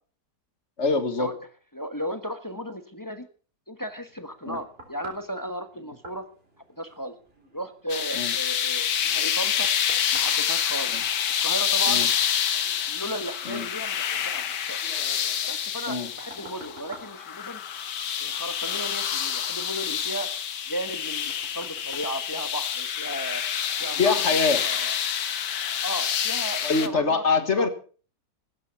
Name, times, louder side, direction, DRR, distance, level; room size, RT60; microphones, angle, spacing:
voice 1, 0.8-1.3 4.5-4.6 8.2-8.3 10.9-11.0 11.9-12.1 13.5-13.7 15.9-16.1 24.0-24.6 26.6-27.7, left 4 dB, 45° left, 10 dB, 1.8 m, -24 dB
voice 2, 1.7-3.3 3.7-6.3 6.8-7.2 7.5-9.7 10.1-10.9 11.4-12.1 12.9-14.8 15.5-17.6 18.2-20.3 20.7-23.4 23.8-24.9 25.8-27.7, right 1 dB, 15° left, 9 dB, 1.1 m, -35 dB
sound 1, 3.8-23.1 23.6-23.7, right 1 dB, 35° right, 4.1 m, -51 dB
sound 2, 7.9-26.9, left 8 dB, 85° left, 1.8 m, -27 dB
15.5 x 13.0 x 5.7 m, 0.41 s
omnidirectional pair, 1.8 m